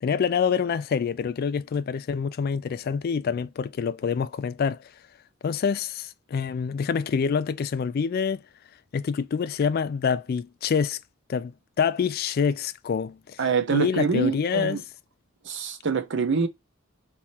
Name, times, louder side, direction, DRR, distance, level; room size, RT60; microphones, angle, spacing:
voice 1, 0.0-4.8 5.4-8.4 8.9-11.0 11.3-13.4 13.7-14.8, left 6 dB, 50° left, 0.3 m, -26 dB
voice 2, 13.4-14.8 15.4-16.5, right 5 dB, 65° right, 0.8 m, -25 dB
3.5 x 3.1 x 4.2 m
head